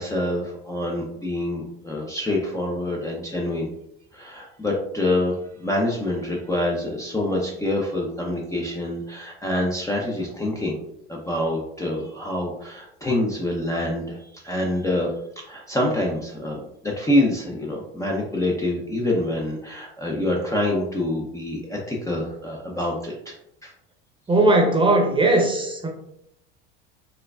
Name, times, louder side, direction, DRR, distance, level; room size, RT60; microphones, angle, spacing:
voice 1, 0.0-3.7 4.1-10.8 11.1-15.1 15.5-23.3 23.6-23.7, left 1 dB, 10° left, -2 dB, 0.6 m, -26 dB
voice 2, 24.3-25.9, right 2 dB, 15° right, 1 dB, 0.8 m, -18 dB
4.5 x 2.2 x 2.3 m, 0.76 s
hypercardioid pair, 85°, 30 cm